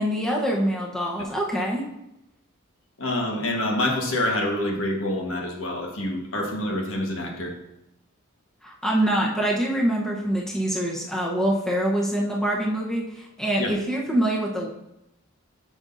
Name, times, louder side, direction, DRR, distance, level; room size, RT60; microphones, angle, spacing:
voice 1, 0.0-1.8 8.6-14.7, right 1 dB, 5° left, -3 dB, 1.0 m, -25 dB
voice 2, 3.0-7.5 13.6-13.7, left 1 dB, 65° left, 1 dB, 1.4 m, -26 dB
9.5 x 6.3 x 2.7 m, 0.85 s
head